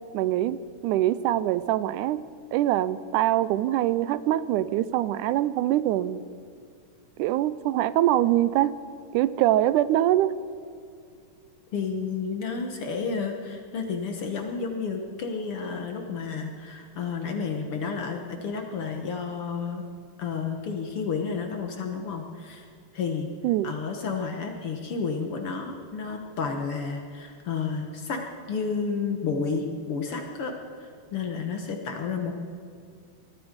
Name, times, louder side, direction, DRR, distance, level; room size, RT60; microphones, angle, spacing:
voice 1, 0.1-2.2 2.5-6.2 7.2-8.8 9.1-10.4 23.4-23.7, right 13 dB, 85° right, 16 dB, 2.1 m, -24 dB
voice 2, 11.7-19.8 20.2-22.6 22.9-23.3 23.6-28.2 28.5-30.5 30.8-32.3, left 5 dB, 60° left, 4 dB, 1.7 m, -31 dB
20.5 x 13.0 x 5.2 m, 2.3 s
omnidirectional pair, 3.6 m